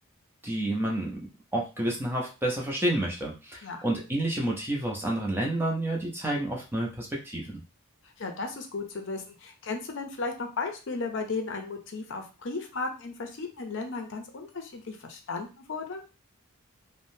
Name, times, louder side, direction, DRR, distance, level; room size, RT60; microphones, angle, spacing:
voice 1, 0.4-1.2 1.5-7.6, right 1 dB, 10° right, -2 dB, 0.5 m, -29 dB
voice 2, 8.2-16.0, left 3 dB, 55° left, 4 dB, 0.5 m, -35 dB
3.4 x 2.1 x 2.6 m, 0.32 s
head